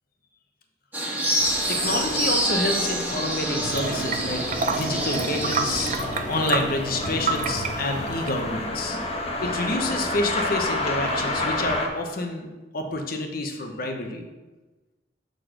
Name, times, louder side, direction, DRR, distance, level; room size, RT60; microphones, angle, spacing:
sound 1, 0.9-6.0, right 1 dB, 10° right, 1.4 m, -27 dB
sound 2, 1.4-11.9, left 2 dB, 35° left, 1.0 m, -30 dB
voice 1, 1.7-5.9 6.3-9.0 9.4-12.5 12.7-14.2, left 2 dB, 55° left, 4 dB, 0.9 m, -28 dB
sound 3, 3.6-8.6, right 4 dB, 45° right, 0.5 m, -30 dB
6.4 x 4.0 x 6.4 m, 1.2 s
head